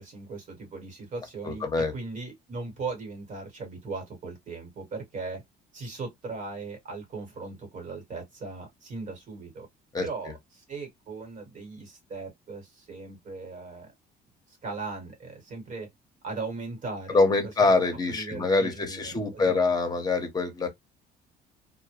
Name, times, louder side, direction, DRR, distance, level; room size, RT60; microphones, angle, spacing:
voice 1, 0.0-5.4 5.7-9.7 10.0-13.9 14.5-15.9 16.2-19.7, right 3 dB, 45° right, 1.3 m, -38 dB
voice 2, 1.4-1.9 9.9-10.1 17.1-20.7, left 3 dB, 25° left, 0.9 m, -24 dB
2.2 x 2.1 x 3.0 m
cardioid pair, 110°, 17 cm